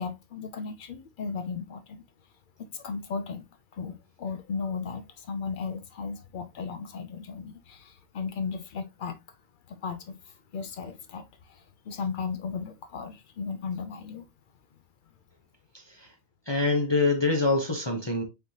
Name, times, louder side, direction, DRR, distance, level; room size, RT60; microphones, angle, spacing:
voice 1, 0.0-2.0 2.6-3.4 3.7-9.4 9.7-14.3, left 5 dB, 85° left, 0.4 m, -36 dB
voice 2, 15.7-16.1 16.5-18.2, left 3 dB, 25° left, 0.6 m, -25 dB
5.2 x 3.1 x 2.7 m
omnidirectional pair, 1.5 m